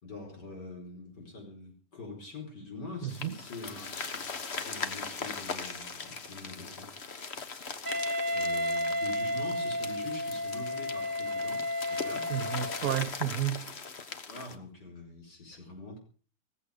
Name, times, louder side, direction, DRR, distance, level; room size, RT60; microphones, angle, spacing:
voice 1, 0.0-3.9 4.6-6.9 8.3-12.4 14.3-16.0, left 3 dB, 60° left, 5.3 m, -44 dB
voice 2, 3.0-3.3 12.3-13.7, right 11 dB, 55° right, 1.4 m, -31 dB
sound 1, 3.1-14.6, left 5 dB, 40° left, 1.3 m, -40 dB
Wind instrument woodwind instrument, 7.9-12.9, left 1 dB, 10° right, 1.7 m, -32 dB
16.5 x 15.0 x 5.1 m
omnidirectional pair, 2.1 m